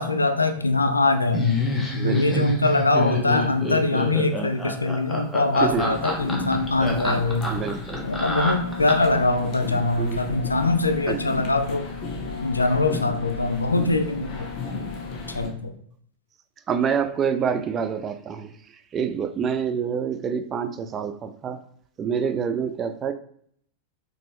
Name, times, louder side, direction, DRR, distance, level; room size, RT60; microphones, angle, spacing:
voice 1, 0.0-1.6 2.0-7.5 8.0-11.9 12.4-14.5 15.3-15.7, left 2 dB, 80° left, 8 dB, 0.4 m, -23 dB
Laughter, 1.3-9.2, left 2 dB, 5° left, 0.9 m, -27 dB
voice 2, 1.9-2.6 5.6-5.8 7.5-8.1 10.0-10.2 11.1-11.2 16.7-18.5 18.9-21.6 22.0-23.1, right 7 dB, 25° right, 10 dB, 0.3 m, -27 dB
sound 1, 5.6-15.5, left 3 dB, 35° left, 0.9 m, -35 dB
Wind instrument woodwind instrument, 8.5-15.3, left 6 dB, 85° right, 1.0 m, -37 dB
4.2 x 3.1 x 3.0 m, 0.64 s
figure-of-eight pair, 90°, 0 cm